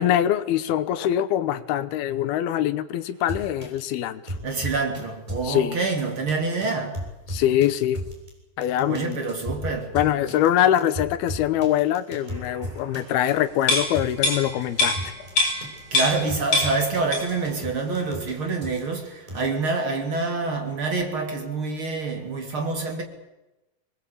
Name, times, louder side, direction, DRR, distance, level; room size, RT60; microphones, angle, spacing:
voice 1, 0.0-4.3 5.4-5.8 7.3-8.0 8.6-9.2 9.9-15.1, left 11 dB, 80° left, 2.9 m, -23 dB
sound 1, 3.3-3.8 4.3-5.0 5.3-5.5 6.0-6.3 6.6-6.7 6.9-8.3 8.6-15.3 15.6-15.8 16.1-18.3 18.6-18.8 19.3-19.5, equal, 10° right, 7.4 m, -35 dB
voice 2, 4.4-7.0 8.9-9.9 15.9-23.0, right 3 dB, 35° right, 3.5 m, -27 dB
sound 2, 13.6-16.3 16.5-17.5 17.8-18.0, left 2 dB, 55° left, 8.8 m, -24 dB
25.5 x 21.0 x 8.7 m
omnidirectional pair, 4.4 m